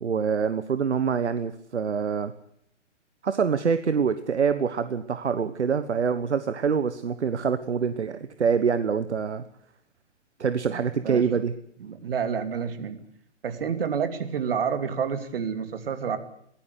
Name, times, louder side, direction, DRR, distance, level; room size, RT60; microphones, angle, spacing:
voice 1, 0.0-2.3 3.2-9.4 10.4-11.5, right 6 dB, 65° right, 13 dB, 1.4 m, -25 dB
voice 2, 10.7-11.2 11.8-13.0 13.4-16.2, right 7 dB, 50° right, 10 dB, 2.8 m, -29 dB
22.5 x 16.5 x 8.2 m, 0.70 s
figure-of-eight pair, 130°, 36 cm